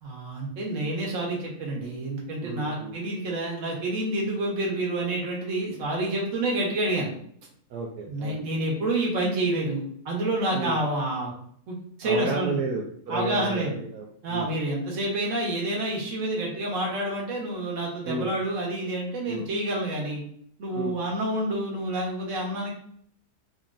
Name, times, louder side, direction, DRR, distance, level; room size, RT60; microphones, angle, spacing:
voice 1, 0.0-7.1 8.1-11.3 11.7-12.6 13.1-13.7 14.2-20.2 20.6-22.7, right 1 dB, 55° right, -2 dB, 1.3 m, -28 dB
voice 2, 2.4-3.0 7.7-8.4 10.5-10.8 12.0-14.5 18.1-18.3 19.3-19.5 20.7-21.0, right 3 dB, 80° right, -1 dB, 1.1 m, -32 dB
4.0 x 2.8 x 2.6 m, 0.63 s
omnidirectional pair, 1.7 m